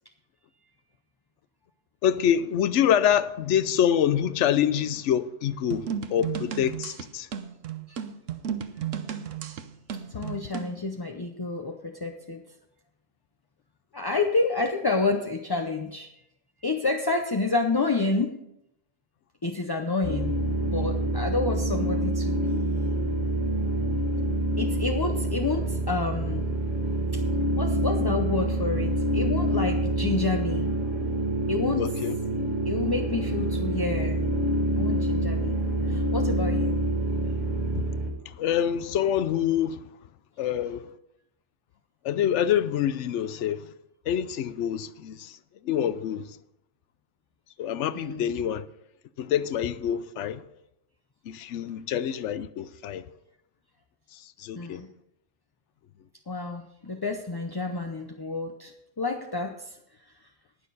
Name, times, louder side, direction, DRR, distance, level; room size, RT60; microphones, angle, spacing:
voice 1, 2.0-7.3 31.8-32.2 38.4-39.8 40.4-40.8 42.0-43.6 44.1-45.3 45.6-46.3 47.6-48.6 49.2-50.4 51.3-53.0 54.4-54.8, left 9 dB, 75° left, 0.9 m, -26 dB
sound 1, 5.7-10.8, right 8 dB, 80° right, 1.2 m, -34 dB
voice 2, 10.1-12.4 13.9-16.1 16.6-18.4 19.4-20.4 20.6-23.1 24.6-26.5 27.1-27.2 27.6-30.7 31.5-31.9 32.7-34.3 34.7-35.6 35.9-36.7 47.9-48.3 54.5-54.9 56.3-59.8, left 3 dB, 25° left, 0.5 m, -29 dB
sound 2, 20.0-38.1, right 1 dB, 35° right, 2.1 m, -27 dB
19.5 x 6.6 x 4.1 m
omnidirectional pair, 1.3 m